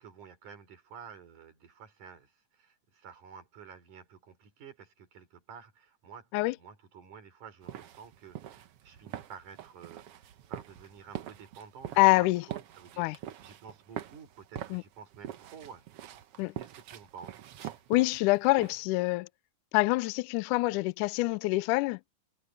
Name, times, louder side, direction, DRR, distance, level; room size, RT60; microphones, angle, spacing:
voice 1, 0.0-15.8 16.6-17.6, right 6 dB, 60° right, 4.9 m, -51 dB
sound 1, 7.6-18.8, right 11 dB, 80° right, 1.3 m, -44 dB
voice 2, 12.0-12.4 13.0-13.2 14.7-14.8 16.4-16.5 17.9-19.3 19.7-22.0, left 22 dB, 80° left, 1.9 m, -26 dB
omnidirectional pair, 4.0 m